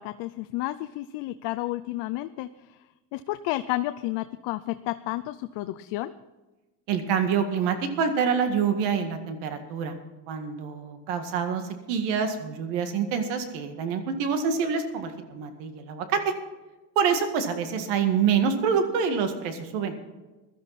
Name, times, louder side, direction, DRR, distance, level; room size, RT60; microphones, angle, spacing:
voice 1, 0.0-2.5 3.1-6.1, left 16 dB, 75° left, 10 dB, 0.6 m, -31 dB
voice 2, 6.9-9.9 10.3-11.6 11.9-16.3 17.0-19.9, right 6 dB, 85° right, 7 dB, 2.0 m, -26 dB
16.5 x 12.5 x 4.2 m, 1.1 s
cardioid pair, 115°, 41 cm